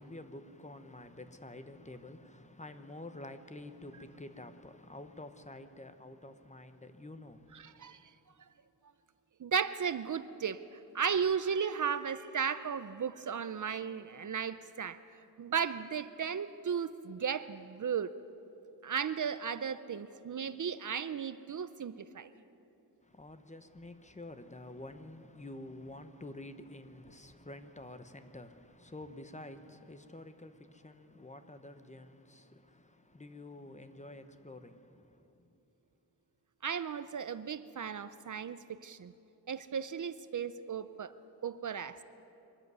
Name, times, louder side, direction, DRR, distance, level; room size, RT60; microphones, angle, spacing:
voice 1, 0.0-8.1 23.0-35.6, left 1 dB, 20° left, 0.9 m, -49 dB
voice 2, 7.5-8.0 9.4-10.6 10.9-15.0 15.4-18.1 18.8-22.3 36.6-39.1 39.5-41.1 41.4-42.0, right 7 dB, 50° right, 0.6 m, -35 dB
23.5 x 13.5 x 9.5 m
wide cardioid pair, 150°, 40 cm